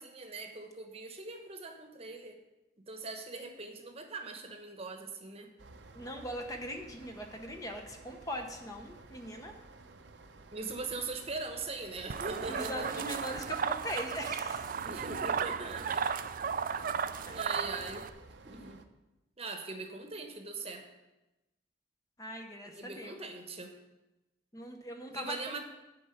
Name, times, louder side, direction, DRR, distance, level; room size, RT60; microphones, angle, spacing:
voice 1, 0.0-2.4 2.9-5.5 10.5-13.2 14.8-16.2 17.3-18.1 18.4-18.8 19.4-20.8 22.7-23.7 25.1-25.6, right 3 dB, 35° right, 5 dB, 1.0 m, -41 dB
sound 1, 5.6-18.8, right 3 dB, 80° right, 0.7 m, -54 dB
voice 2, 5.9-9.5 12.5-14.7 17.2-17.4 22.2-23.2 24.5-25.6, equal, 20° left, 3 dB, 0.8 m, -41 dB
sound 2, 12.1-18.1, right 6 dB, 50° right, 0.4 m, -35 dB
9.9 x 4.5 x 6.9 m, 1.0 s
head